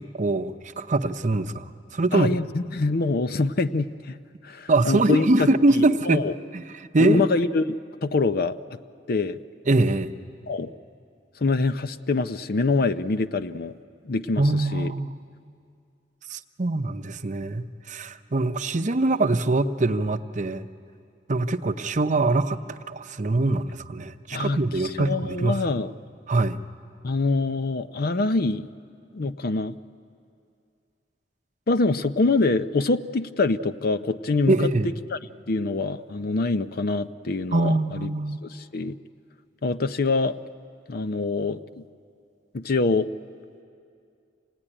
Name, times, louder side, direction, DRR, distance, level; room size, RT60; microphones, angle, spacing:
voice 1, 0.0-1.6 1.9-2.3 4.7-6.2 6.5-7.3 9.7-10.1 14.4-15.2 16.3-20.7 21.3-25.6 26.3-26.6 34.5-34.9 37.5-38.4, right 2 dB, 45° right, 9 dB, 0.7 m, -23 dB
voice 2, 2.1-4.2 4.4-5.5 5.7-6.3 7.0-8.8 9.1-9.4 10.5-10.7 11.4-13.7 14.0-14.9 24.3-25.9 27.0-28.7 29.1-29.8 31.7-34.6 34.8-35.2 35.5-38.1 38.4-39.0 39.6-40.4 40.9-41.8 42.5-43.1, left 3 dB, 55° left, 12 dB, 0.6 m, -25 dB
26.5 x 17.5 x 10.0 m, 2.4 s
head